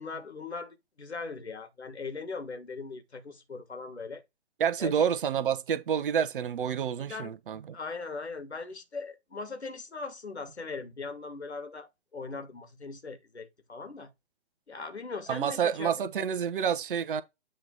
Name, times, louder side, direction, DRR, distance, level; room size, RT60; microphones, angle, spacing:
voice 1, 0.0-4.2 4.8-5.1 7.0-7.3 7.7-14.1 14.7-16.0, left 4 dB, 85° left, 1.7 m, -40 dB
voice 2, 4.6-7.6 15.3-17.2, right 8 dB, 55° right, 0.9 m, -28 dB
7.9 x 3.2 x 3.9 m
figure-of-eight pair, 125°, 32 cm